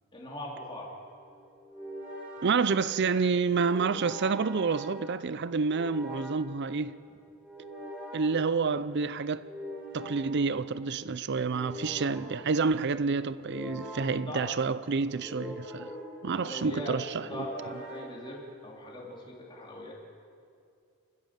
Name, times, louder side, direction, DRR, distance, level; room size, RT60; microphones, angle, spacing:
voice 1, 0.1-0.9 14.1-14.5 14.9-15.0 16.3-19.9, left 1 dB, 20° left, 3.3 m, -40 dB
sound 1, 0.6-18.9, equal, 5° right, 5.7 m, -44 dB
voice 2, 2.4-6.9 8.1-9.5 9.9-15.9 16.2-17.2, right 4 dB, 50° right, 0.5 m, -28 dB
28.0 x 15.0 x 7.4 m
head